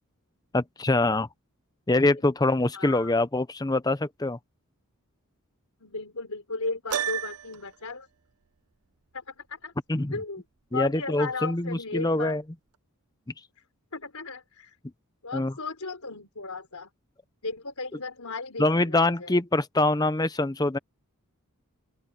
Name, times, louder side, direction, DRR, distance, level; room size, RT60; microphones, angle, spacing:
voice 1, 0.5-1.3 1.9-4.4 9.9-10.1 10.7-12.4 15.3-15.5 18.6-20.8, left 2 dB, 15° left, 0.6 m, -24 dB
voice 2, 2.7-3.1 5.8-8.1 9.1-9.7 10.1-10.4 10.7-12.4 13.9-14.8 15.2-16.9 17.4-19.3, left 3 dB, 80° left, 3.9 m, -35 dB
Piano, 6.9-7.8, right 9 dB, 90° right, 0.7 m, -31 dB
open air
head